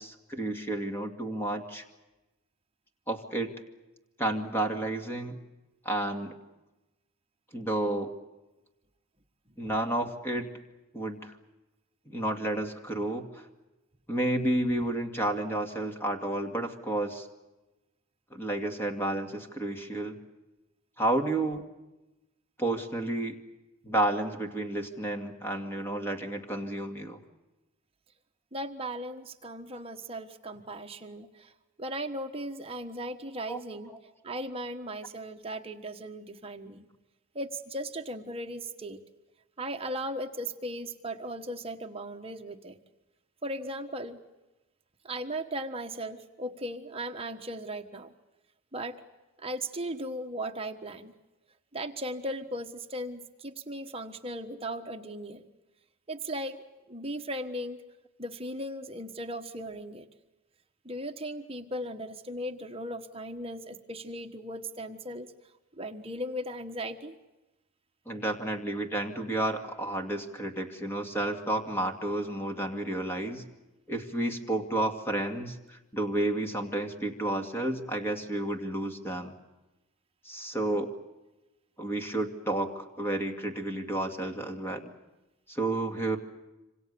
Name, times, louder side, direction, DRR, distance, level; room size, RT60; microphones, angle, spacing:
voice 1, 0.0-1.8 3.1-3.5 4.2-5.4 5.8-6.3 7.5-8.1 9.6-10.5 10.9-11.4 12.1-13.5 14.1-17.3 18.3-20.2 21.0-21.7 22.6-23.4 23.8-27.2 33.5-33.6 68.1-73.4 73.9-79.3 80.2-80.9 81.8-84.9 85.5-86.2, right 1 dB, 10° left, 5 dB, 2.3 m, -31 dB
voice 2, 28.5-31.5 31.8-33.9 34.2-36.9 37.3-39.0 39.6-42.8 43.4-44.2 45.0-48.1 48.7-49.0 49.4-51.1 51.7-55.5 56.1-57.8 58.2-60.1 60.8-65.3 65.7-67.1, right 1 dB, 25° right, 5 dB, 1.3 m, -37 dB
27.0 x 26.0 x 6.9 m, 1.0 s
head